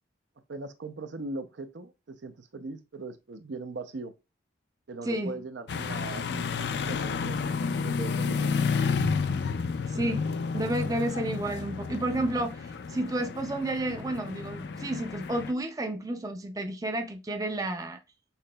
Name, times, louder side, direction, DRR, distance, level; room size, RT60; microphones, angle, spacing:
voice 1, 0.5-4.1 4.9-8.6, right 3 dB, 65° right, 0.5 m, -40 dB
sound 1, 5.7-15.5, left 5 dB, 55° left, 0.4 m, -31 dB
voice 2, 9.9-10.3 10.5-18.0, right 1 dB, 20° right, 0.4 m, -31 dB
5.7 x 3.7 x 2.2 m
head